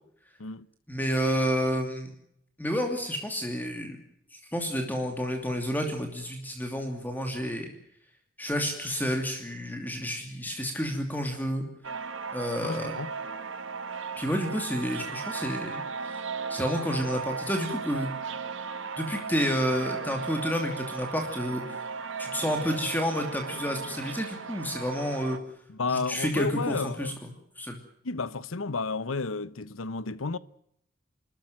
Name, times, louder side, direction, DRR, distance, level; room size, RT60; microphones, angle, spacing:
voice 1, 0.9-2.1 2.6-4.0 4.3-7.7 8.4-11.6 12.3-13.0 14.2-15.8 16.5-18.1 19.0-21.8 22.2-25.4 25.9-27.1 27.6-27.8, equal, 10° left, 2.7 m, -30 dB
sound 1, 11.8-25.4, right 5 dB, 65° right, 1.7 m, -36 dB
voice 2, 12.6-13.1 25.7-27.1 28.0-30.4, left 4 dB, 85° left, 1.0 m, -32 dB
27.5 x 14.0 x 9.3 m
head